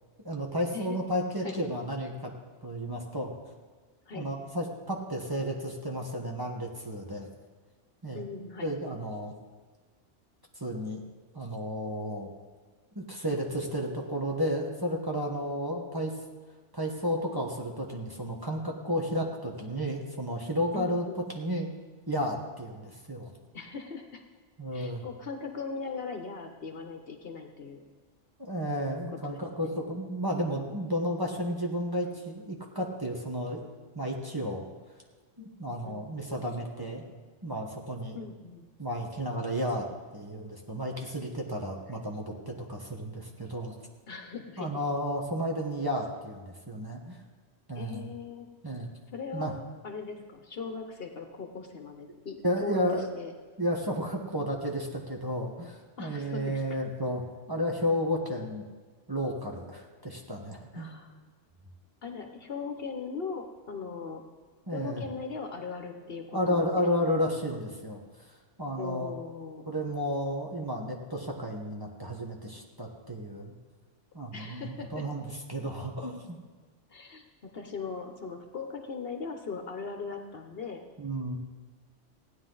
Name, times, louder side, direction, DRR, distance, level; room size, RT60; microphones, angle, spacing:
voice 1, 0.2-2.3 2.6-3.3 4.1-7.3 8.0-8.2 8.6-9.3 10.6-11.0 11.3-12.3 12.9-16.1 16.7-21.1 21.3-21.7 22.1-23.3 24.6-25.0 28.4-33.6 33.9-34.6 35.4-37.0 37.4-38.2 38.8-39.9 40.1-43.7 44.6-47.2 47.7-48.1 48.6-48.9 49.3-49.5 52.1-52.2 52.4-53.1 53.6-57.2 57.5-58.6 59.1-60.9 64.7-65.0 66.3-68.0 68.6-69.1 69.7-73.5 74.1-76.4 81.0-81.4, equal, 20° right, 0 dB, 1.3 m, -32 dB
voice 2, 8.1-8.7 20.7-21.2 23.5-24.2 24.7-27.8 29.2-29.7 35.8-36.2 38.1-38.7 41.9-42.0 44.1-44.8 47.8-48.5 49.1-53.3 56.0-56.8 60.7-61.3 62.0-64.3 64.7-66.7 68.8-69.7 74.3-75.1 76.9-80.8, left 5 dB, 55° left, 5 dB, 1.1 m, -39 dB
16.0 x 9.7 x 3.9 m, 1.4 s
omnidirectional pair, 1.2 m